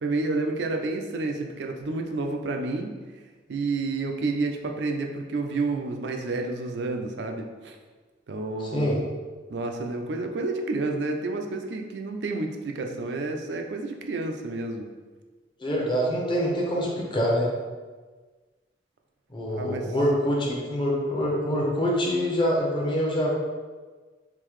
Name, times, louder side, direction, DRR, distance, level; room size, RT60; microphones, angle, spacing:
voice 1, 0.0-2.9 3.5-7.8 8.3-8.9 9.5-14.9 19.5-19.9, right 3 dB, 70° right, 4 dB, 0.4 m, -30 dB
voice 2, 15.6-17.5 19.3-23.3, equal, 30° left, -3 dB, 0.7 m, -25 dB
3.7 x 2.7 x 3.1 m, 1.4 s
head